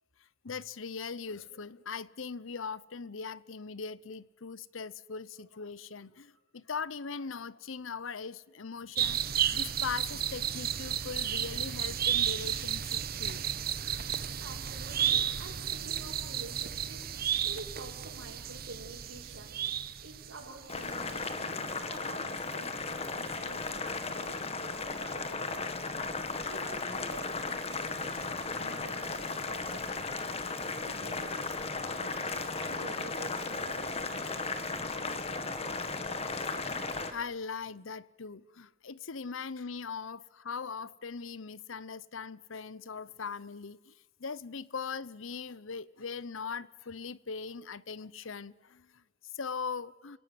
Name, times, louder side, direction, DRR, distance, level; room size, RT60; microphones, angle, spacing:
voice 1, 0.4-13.4 34.1-34.4 36.8-50.2, left 5 dB, 75° left, 0.8 m, -40 dB
sound 1, 8.9-20.6 20.9-21.0, right 9 dB, 45° right, 1.0 m, -33 dB
voice 2, 14.4-25.7 26.5-30.3 30.7-31.4 32.0-34.5, right 2 dB, 75° right, 6.2 m, -49 dB
Boiling, 20.7-37.1, left 3 dB, 30° left, 1.8 m, -36 dB
29.0 x 18.0 x 9.5 m
head